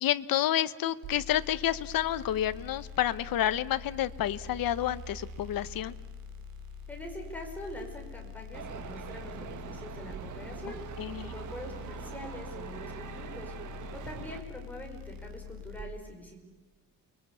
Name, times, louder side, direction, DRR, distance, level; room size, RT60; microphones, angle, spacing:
voice 1, 0.0-5.9 11.0-11.3, left 12 dB, 85° left, 13 dB, 1.0 m, -29 dB
sound 1, 1.0-15.8, left 3 dB, 90° right, 2.8 m, -44 dB
voice 2, 6.9-10.8 11.2-13.5 13.9-16.4, equal, 5° left, 1 dB, 5.4 m, -44 dB
sound 2, 8.5-14.4, right 7 dB, 60° right, 1.8 m, -43 dB
29.0 x 22.0 x 8.4 m, 1.2 s
wide cardioid pair, 180°, 34 cm